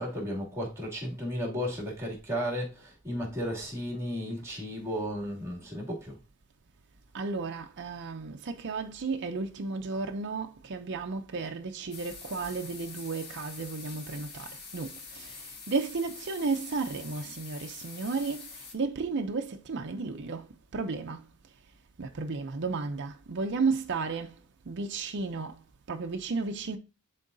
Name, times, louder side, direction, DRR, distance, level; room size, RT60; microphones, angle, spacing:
voice 1, 0.0-6.2, equal, 15° right, 2.5 m, -34 dB
voice 2, 7.1-20.5 20.7-21.3 22.0-25.6 25.9-26.8, right 4 dB, 55° right, 0.6 m, -33 dB
sound 1, 11.9-18.7, left 4 dB, 45° left, 1.8 m, -45 dB
11.0 x 3.8 x 2.6 m
head